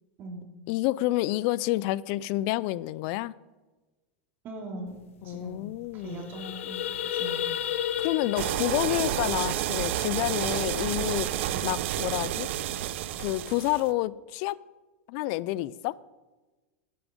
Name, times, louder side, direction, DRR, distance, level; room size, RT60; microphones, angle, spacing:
voice 1, 0.7-3.3 5.2-6.3 8.0-11.3 11.6-12.5 13.2-14.6 15.1-16.0, left 17 dB, 45° left, 0.3 m, -29 dB
voice 2, 4.4-5.0 5.2-5.7 5.9-6.8 7.1-7.5 11.5-11.6, right 2 dB, 30° right, 2.7 m, -40 dB
sound 1, 5.0-5.1 5.3-5.6 5.9-10.2, left 10 dB, 85° left, 0.7 m, -33 dB
sound 2, 8.4-13.9, right 12 dB, 65° right, 0.6 m, -30 dB
10.0 x 8.5 x 5.2 m
supercardioid pair, 155°, 7 cm